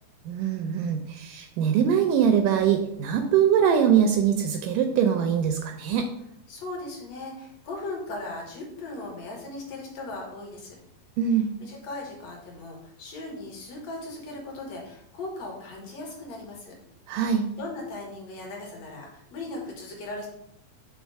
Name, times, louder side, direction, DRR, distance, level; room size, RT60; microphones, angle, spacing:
voice 1, 0.3-6.1 11.2-11.5 17.1-17.4, right 8 dB, 80° right, 5 dB, 2.0 m, -23 dB
voice 2, 6.5-10.8 11.6-16.7 17.2-20.3, left 2 dB, 55° left, -1 dB, 2.4 m, -38 dB
6.3 x 3.7 x 4.6 m, 0.73 s
omnidirectional pair, 4.1 m